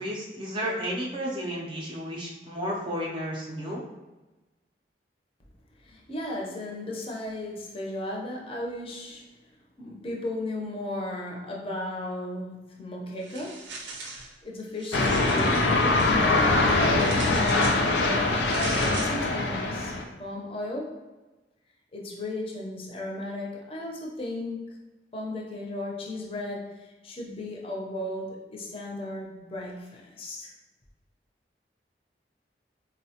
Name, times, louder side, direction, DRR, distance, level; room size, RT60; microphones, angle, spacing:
voice 1, 0.0-3.8, equal, 25° right, -3 dB, 0.4 m, -32 dB
voice 2, 5.8-9.2 9.8-13.7 14.4-18.4 18.9-19.9 20.2-21.0 21.9-24.7 25.1-30.5, left 1 dB, 30° left, -2 dB, 0.5 m, -35 dB
sound 1, 13.2-14.3 14.7-16.1 17.0-17.8 18.4-19.2, right 3 dB, 90° right, 0.5 m, -39 dB
sound 2, 14.9-20.0, left 2 dB, 85° left, 0.4 m, -23 dB
4.1 x 2.0 x 2.8 m, 1.1 s
head